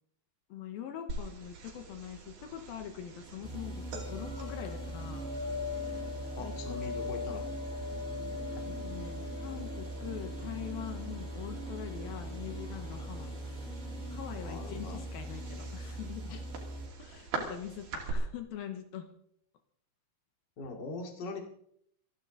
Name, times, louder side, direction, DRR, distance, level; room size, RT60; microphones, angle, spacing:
voice 1, 0.5-5.3 6.4-6.8 8.6-13.3 14.1-16.4 17.0-19.1, left 9 dB, 75° left, 7 dB, 2.9 m, -43 dB
sound 1, 1.1-18.1, left 1 dB, 80° right, 4.8 m, -43 dB
sound 2, 3.4-16.9, right 1 dB, ahead, 3.3 m, -41 dB
voice 2, 6.3-7.4 14.4-15.0 16.3-16.4 20.6-21.4, left 4 dB, 35° left, 3 dB, 2.4 m, -41 dB
26.0 x 11.0 x 4.0 m, 0.69 s
omnidirectional pair, 4.5 m